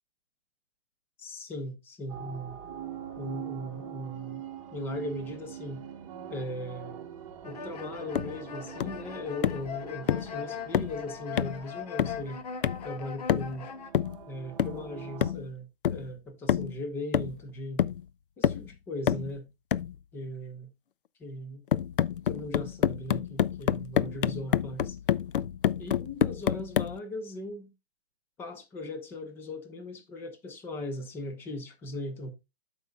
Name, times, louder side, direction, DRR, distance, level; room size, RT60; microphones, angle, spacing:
voice 1, 1.2-2.6 3.2-4.4 4.7-5.8 6.3-7.0 7.4-12.4 12.8-13.7 14.3-17.8 18.4-19.5 20.1-20.7 21.2-21.6 22.2-25.0 25.8-27.7 28.4-32.3, left 1 dB, 5° left, 0.7 m, -38 dB
sound 1, 2.1-15.3, right 9 dB, 35° right, 1.1 m, -44 dB
sound 2, 7.4-13.9, left 6 dB, 40° left, 1.1 m, -41 dB
boat footsteps running hard Current, 8.2-8.4 8.8-9.0 9.4-9.7 10.1-10.3 10.7-11.0 11.4-11.6 12.0-12.3 12.6-12.9 13.3-13.6 13.9-14.2 14.6-14.9 15.2-15.5 15.8-16.1 16.5-16.8 17.1-17.5 17.8-18.1 18.4-18.7 19.1-19.3 19.7-20.0 21.7-27.0, left 10 dB, 60° left, 0.5 m, -28 dB
13.0 x 5.4 x 2.3 m
hypercardioid pair, 160°, 30 cm